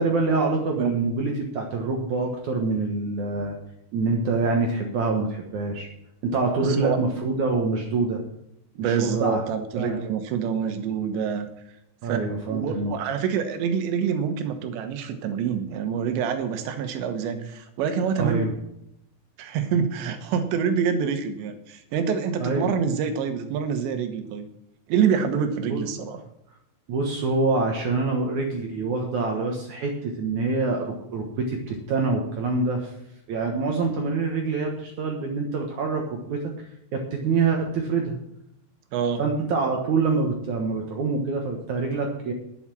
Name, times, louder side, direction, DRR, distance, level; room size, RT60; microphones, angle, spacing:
voice 1, 0.0-3.6 3.9-5.9 6.2-8.2 8.8-9.4 9.8-10.0 12.0-13.0 18.2-18.5 22.4-22.7 25.7-25.8 26.9-32.9 33.3-36.5 36.9-38.2 39.2-42.3, right 3 dB, 65° right, 2 dB, 2.0 m, -25 dB
voice 2, 6.6-7.0 8.8-11.5 12.0-12.2 12.5-18.5 19.4-24.5 24.9-26.2 38.9-39.2, right 7 dB, 80° right, 8 dB, 3.4 m, -26 dB
11.0 x 8.9 x 6.1 m, 0.79 s
omnidirectional pair, 5.1 m